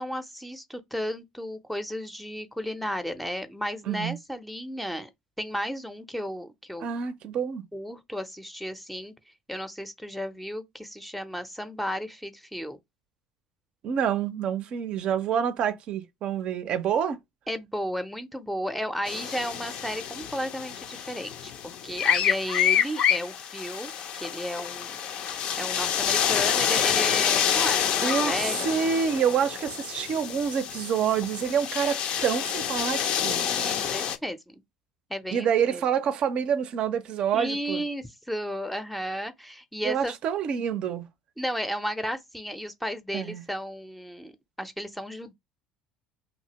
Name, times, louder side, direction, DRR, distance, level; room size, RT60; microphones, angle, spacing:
voice 1, 0.0-5.1 5.4-6.9 7.7-9.1 9.5-12.8 17.5-28.7 33.3-34.5 35.1-35.8 37.3-40.1 41.4-45.3, equal, 5° left, 0.5 m, -34 dB
voice 2, 3.9-4.2 6.8-7.6 13.8-17.2 28.0-28.3 28.6-33.4 35.3-37.8 39.8-41.1 43.1-43.4, right 8 dB, 50° right, 0.5 m, -27 dB
sound 1, 19.1-34.2, left 9 dB, 50° left, 0.4 m, -28 dB
2.8 x 2.7 x 2.9 m
figure-of-eight pair, 60°, 2 cm